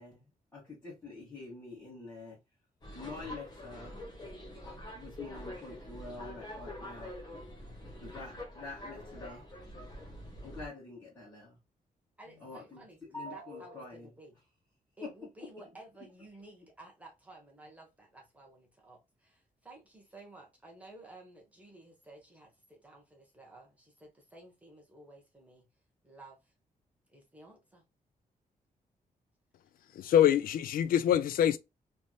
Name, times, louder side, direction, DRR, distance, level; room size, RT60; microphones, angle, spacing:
voice 1, 0.0-2.4 2.9-4.0 4.6-7.1 8.0-9.4 10.4-11.6 12.3-14.1 15.0-15.1, left 3 dB, 15° left, 1.4 m, -46 dB
sound 1, 2.8-10.7, left 1 dB, 30° left, 1.0 m, -45 dB
voice 2, 12.2-13.0 13.3-14.4 15.0-25.7 26.0-26.5 27.1-27.8, right 2 dB, 10° right, 1.0 m, -54 dB
voice 3, 29.9-31.6, left 10 dB, 80° left, 0.4 m, -25 dB
3.3 x 2.9 x 2.2 m
wide cardioid pair, 175°, 14 cm